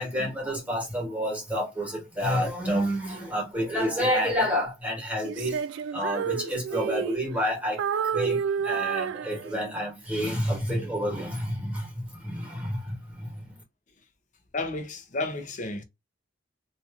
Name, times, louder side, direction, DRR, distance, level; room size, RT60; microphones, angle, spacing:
voice 1, 0.0-5.6 5.9-7.8 8.1-8.4 8.6-11.9 12.2-12.9 13.2-13.3, equal, 10° right, 1.3 m, -29 dB
Female singing, 5.2-7.5 7.8-9.8, right 7 dB, 65° right, 0.3 m, -30 dB
voice 2, 14.5-15.8, left 2 dB, 40° left, 0.6 m, -32 dB
2.8 x 2.4 x 2.4 m
head